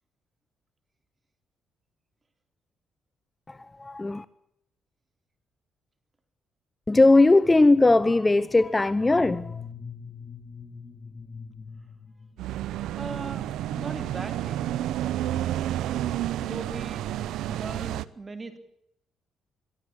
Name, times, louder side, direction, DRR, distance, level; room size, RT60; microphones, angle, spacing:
voice 1, 3.5-4.2 6.9-9.6, left 2 dB, 20° left, 0.8 m, -19 dB
sound 1, 8.9-13.0, left 6 dB, 35° left, 1.6 m, -42 dB
sound 2, 12.4-18.0, right 12 dB, 85° right, 0.8 m, -30 dB
voice 2, 13.0-13.5 13.8-14.7 16.4-17.1 17.5-18.6, right 3 dB, 25° right, 3.7 m, -38 dB
22.5 x 14.0 x 8.5 m
cardioid pair, 90°, 0 cm